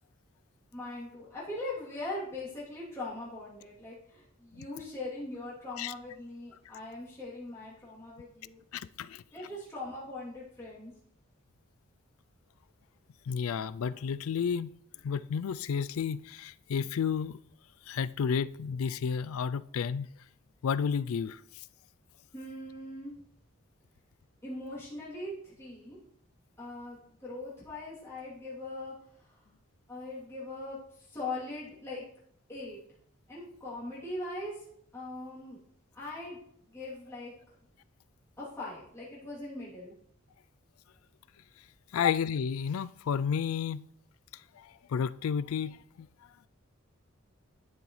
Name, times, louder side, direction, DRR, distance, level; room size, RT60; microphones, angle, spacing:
voice 1, 0.7-8.6 9.3-10.9 22.3-23.1 24.4-26.0 26.6-28.9 29.2-29.4 29.9-32.0 32.5-32.8 33.3-34.6 34.9-35.6 35.9-36.4 36.7-37.3 38.4-39.9, left 2 dB, 10° left, 2.9 m, -41 dB
voice 2, 8.7-9.2 13.3-14.7 15.0-17.4 17.9-20.1 20.6-21.4 41.9-43.8 44.6-46.1, left 7 dB, 80° left, 0.4 m, -31 dB
11.5 x 7.0 x 3.2 m
head